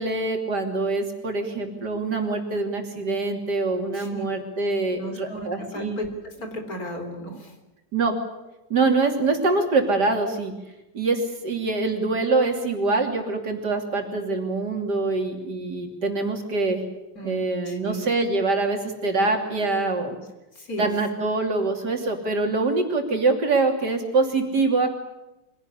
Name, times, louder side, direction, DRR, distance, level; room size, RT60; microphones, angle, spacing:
voice 1, 0.0-6.0 7.9-8.1 8.7-10.5 10.9-16.8 17.2-20.2 20.8-24.9, right 3 dB, 65° right, 4 dB, 3.5 m, -24 dB
voice 2, 3.9-4.2 5.0-7.6 17.2-18.1 20.6-20.9, equal, 55° left, 5 dB, 4.1 m, -35 dB
24.0 x 17.5 x 9.9 m, 1.0 s
omnidirectional pair, 1.9 m